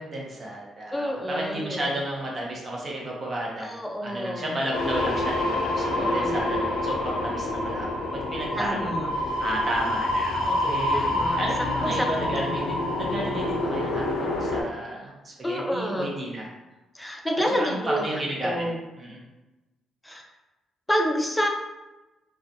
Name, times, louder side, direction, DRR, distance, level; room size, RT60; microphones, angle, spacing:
voice 1, 0.0-3.7 4.0-16.5 17.6-18.6 19.0-19.2, right 1 dB, 40° right, -2 dB, 0.7 m, -32 dB
voice 2, 0.9-1.8 3.6-4.5 5.8-6.4 8.6-9.1 10.9-11.4 11.8-12.3 12.6-12.7 15.4-16.1 16.9-18.0 18.4-18.8 20.0-20.3 20.9-21.5, equal, 5° left, 1 dB, 0.4 m, -28 dB
sound 1, 4.7-14.6, left 1 dB, 85° left, 0.4 m, -27 dB
2.4 x 2.3 x 2.6 m, 1.1 s
cardioid pair, 90°, 0 cm